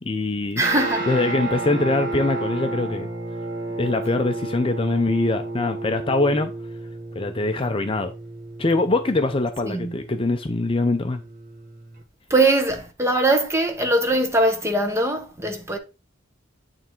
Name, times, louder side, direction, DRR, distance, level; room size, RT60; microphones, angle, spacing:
voice 1, 0.0-0.6 1.1-3.1 3.8-6.5 7.2-8.1 8.6-11.2, left 2 dB, 25° left, 0.5 m, -23 dB
voice 2, 0.5-1.1 9.6-9.9 12.3-15.8, right 2 dB, 15° right, 1.1 m, -21 dB
Guitar, 0.6-12.0, right 2 dB, 45° right, 1.6 m, -32 dB
8.9 x 3.4 x 4.5 m
head